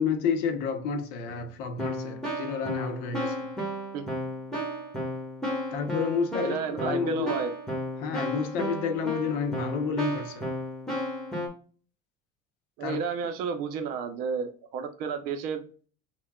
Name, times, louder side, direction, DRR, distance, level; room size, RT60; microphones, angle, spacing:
voice 1, 0.0-3.5 5.7-7.4 8.0-10.5 12.8-13.0, left 5 dB, 65° left, 0.7 m, -30 dB
Keyboard (musical), 1.3-1.4 1.8-11.5, equal, 5° left, 1.2 m, -33 dB
voice 2, 6.3-7.5 12.8-15.6, right 6 dB, 60° right, 0.7 m, -31 dB
5.7 x 2.2 x 2.3 m
cardioid pair, 165°, 16 cm